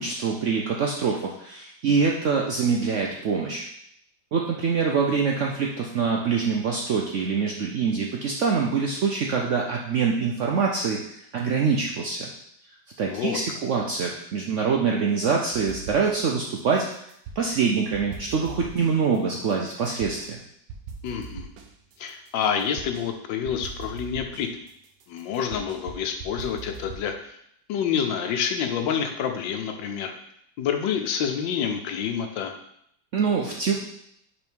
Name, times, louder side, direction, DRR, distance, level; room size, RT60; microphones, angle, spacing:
voice 1, 0.0-3.6 4.3-12.3 13.0-16.9 17.4-20.4 33.1-33.7, right 5 dB, 70° right, 0 dB, 0.7 m, -25 dB
voice 2, 13.1-13.4 21.0-21.5 22.0-24.6 25.1-27.4 27.7-30.1 30.6-32.5, left 7 dB, 85° left, 6 dB, 1.4 m, -28 dB
sound 1, 15.5-16.4 16.7-17.6 17.9-20.3 20.7-23.1 23.5-27.1, right 5 dB, 85° right, 1.4 m, -41 dB
5.2 x 4.1 x 4.6 m, 0.71 s
omnidirectional pair, 1.9 m